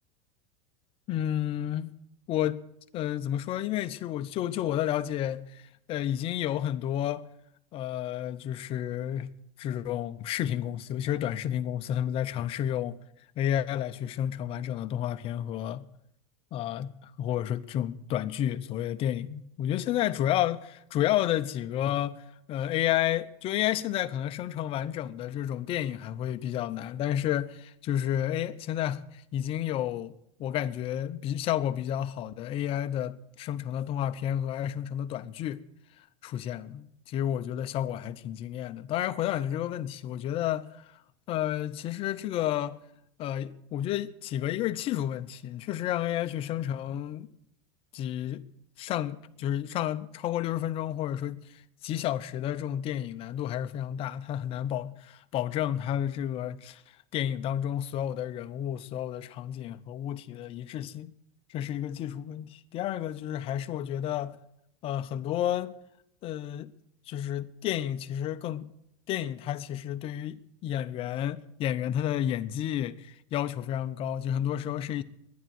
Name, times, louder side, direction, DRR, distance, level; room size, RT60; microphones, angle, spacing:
voice 1, 1.1-1.9 2.3-2.6 2.9-5.6 5.9-7.3 7.7-9.3 9.6-13.0 13.4-15.9 16.5-22.2 22.5-30.1 30.4-35.6 36.2-40.8 41.3-42.8 43.2-47.3 47.9-48.5 48.8-51.4 51.8-56.8 57.1-61.1 61.5-64.4 64.8-65.7 66.2-66.7 67.1-68.7 69.1-75.0, left 11 dB, 35° left, 0.7 m, -31 dB
11.0 x 10.0 x 9.4 m
supercardioid pair, 150°, 17 cm